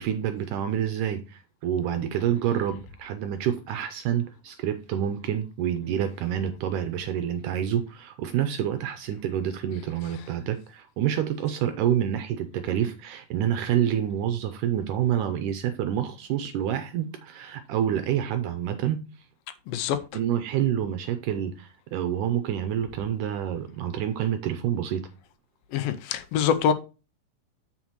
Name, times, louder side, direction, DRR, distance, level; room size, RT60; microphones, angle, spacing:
voice 1, 0.0-19.0 20.1-25.1, right 10 dB, 80° right, 1.9 m, -28 dB
voice 2, 19.7-20.0 25.7-26.7, left 8 dB, 80° left, 2.3 m, -24 dB
7.5 x 7.3 x 3.0 m
omnidirectional pair, 4.2 m